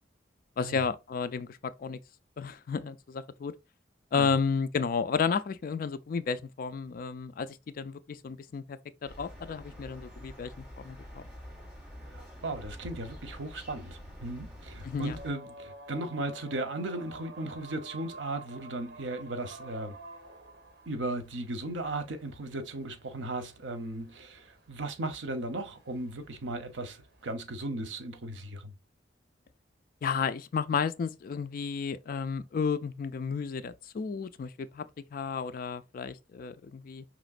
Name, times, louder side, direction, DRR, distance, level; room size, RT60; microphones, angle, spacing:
voice 1, 0.6-2.0 2.4-3.5 4.1-11.2 14.8-15.2 30.0-34.9 35.1-37.0, left 5 dB, 50° left, 0.3 m, -32 dB
sound 1, 9.0-15.3, equal, 10° right, 1.5 m, -47 dB
voice 2, 12.1-20.0 20.9-28.7, right 2 dB, 85° right, 0.8 m, -36 dB
sound 2, 15.1-27.3, right 2 dB, 60° right, 1.0 m, -50 dB
5.0 x 3.0 x 2.4 m
head